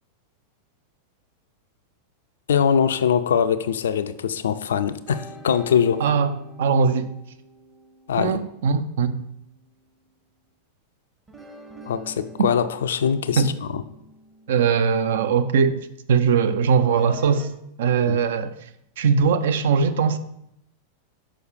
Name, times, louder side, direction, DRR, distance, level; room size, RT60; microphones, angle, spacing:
voice 1, 2.5-6.0 8.1-8.4 11.9-13.8 18.1-18.2, left 7 dB, 65° left, 0.3 m, -22 dB
sound 1, 5.1-9.6 11.3-15.4 16.8-17.5, right 2 dB, 15° right, 0.8 m, -45 dB
voice 2, 6.0-6.3 6.6-7.1 8.2-9.3 13.4-13.5 14.5-15.8 16.1-17.5 17.8-18.5 19.0-20.2, right 6 dB, 60° right, 0.4 m, -20 dB
6.2 x 4.8 x 3.2 m
figure-of-eight pair, 90°, 0 cm